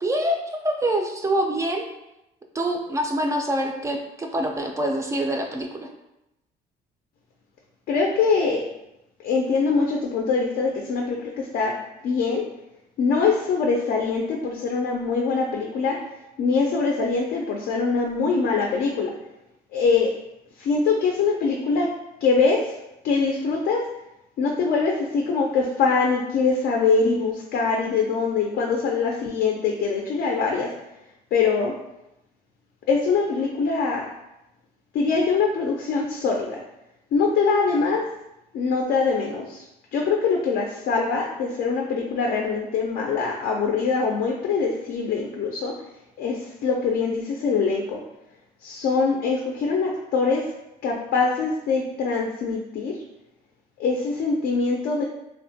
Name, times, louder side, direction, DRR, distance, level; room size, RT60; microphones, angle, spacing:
voice 1, 0.0-1.8 2.5-5.9, right 1 dB, 20° right, 2 dB, 0.3 m, -25 dB
voice 2, 7.9-8.6 9.2-11.8 12.0-12.4 13.0-16.0 16.4-19.1 19.7-20.1 20.6-21.9 22.2-22.7 23.0-23.8 24.4-30.7 31.3-31.7 32.9-34.1 34.9-36.6 37.1-38.1 38.5-39.6 39.9-45.7 46.2-48.0 48.6-50.5 50.8-53.0 53.8-55.0, left 4 dB, 65° left, 0 dB, 0.4 m, -23 dB
3.0 x 2.1 x 2.7 m, 0.89 s
cardioid pair, 110°, 17 cm